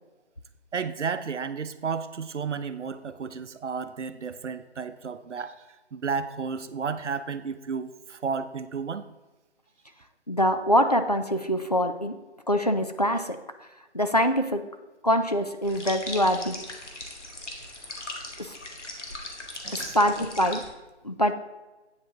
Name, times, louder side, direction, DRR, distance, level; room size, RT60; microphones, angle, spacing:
voice 1, 0.7-5.6 5.9-9.0 19.6-20.0, right 5 dB, 85° right, 11 dB, 0.8 m, -32 dB
voice 2, 10.3-12.2 12.5-13.7 13.9-14.6 15.0-16.6 18.4-18.6 19.7-20.7 21.0-21.3, equal, 35° left, 7 dB, 0.4 m, -24 dB
sound 1, 15.6-20.7, left 2 dB, 85° left, 1.9 m, -38 dB
8.8 x 7.6 x 3.9 m, 1.1 s
figure-of-eight pair, 165°, 35 cm